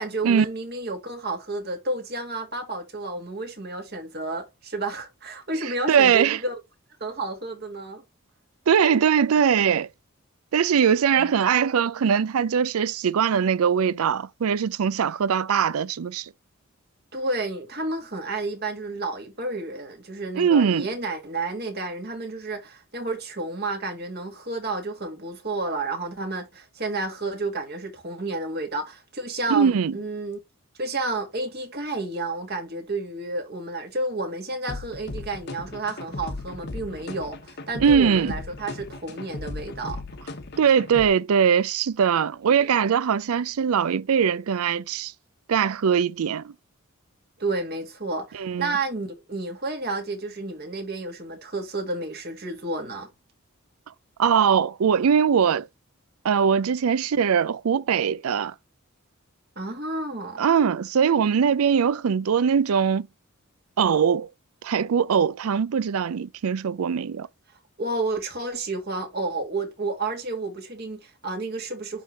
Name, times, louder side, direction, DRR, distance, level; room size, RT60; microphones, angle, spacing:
voice 1, 0.0-6.6 7.0-8.0 11.2-11.3 17.1-30.4 30.8-40.0 42.6-42.8 47.4-53.1 59.6-60.4 67.8-72.0, right 2 dB, 45° right, 2.2 m, -31 dB
voice 2, 5.6-6.4 8.7-9.9 10.5-16.3 20.4-20.9 29.5-30.0 37.8-38.3 40.6-45.1 45.5-46.5 48.3-48.7 54.2-55.7 56.2-58.5 60.4-63.1 63.8-64.3 64.6-67.3, right 7 dB, 85° right, 0.4 m, -21 dB
sound 1, 34.7-41.1, left 2 dB, 50° left, 1.0 m, -37 dB
11.0 x 3.6 x 2.8 m
head